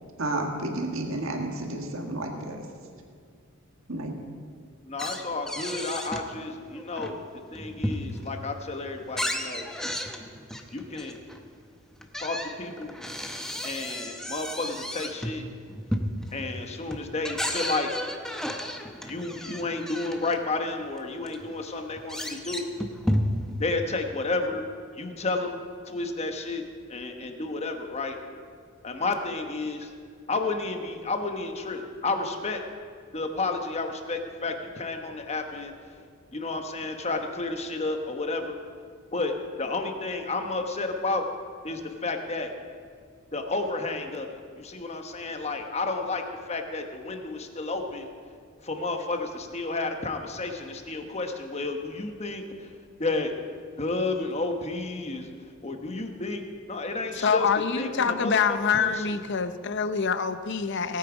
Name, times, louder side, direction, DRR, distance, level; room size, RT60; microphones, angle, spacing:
voice 1, 0.2-2.6 3.9-4.2, right 2 dB, 70° right, 3 dB, 1.6 m, -31 dB
voice 2, 4.9-7.2 7.5-9.7 10.7-11.2 12.2-12.9 13.6-15.4 16.3-17.9 19.0-22.7 23.6-24.7 24.9-25.5 25.8-28.2 28.8-29.9 30.3-32.6 33.1-36.0 36.3-38.6 39.1-41.2 41.6-42.5 43.3-48.1 48.6-53.3 53.8-55.3 55.6-56.4 56.7-57.5 57.8-59.1, left 3 dB, 30° left, 5 dB, 1.1 m, -31 dB
sound 1, 5.0-6.3 6.7-8.4 8.8-11.4 12.0-20.4 21.0-21.1 21.3-23.6, equal, 5° left, 0.8 m, -33 dB
voice 3, 57.2-61.0, left 6 dB, 55° left, 11 dB, 0.6 m, -25 dB
19.0 x 8.8 x 4.9 m, 2.1 s
head